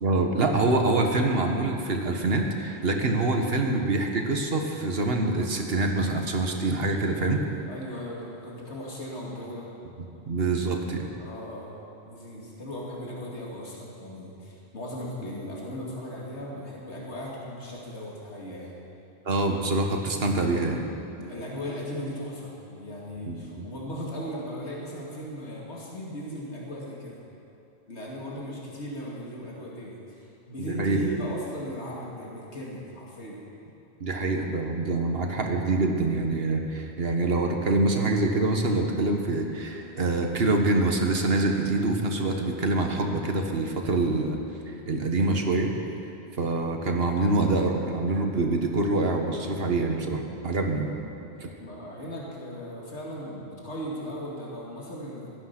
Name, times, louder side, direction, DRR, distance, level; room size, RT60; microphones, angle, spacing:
voice 1, 0.0-7.4 10.3-11.1 19.2-20.8 23.2-23.7 30.6-31.1 34.0-44.4 44.7-45.7 46.4-50.9, right 2 dB, 60° right, 3 dB, 1.6 m, -25 dB
voice 2, 7.7-9.7 11.2-18.7 21.2-27.2 27.9-33.4 51.4-55.3, equal, 85° left, -4 dB, 2.5 m, -37 dB
16.0 x 12.5 x 6.0 m, 2.8 s
omnidirectional pair, 1.1 m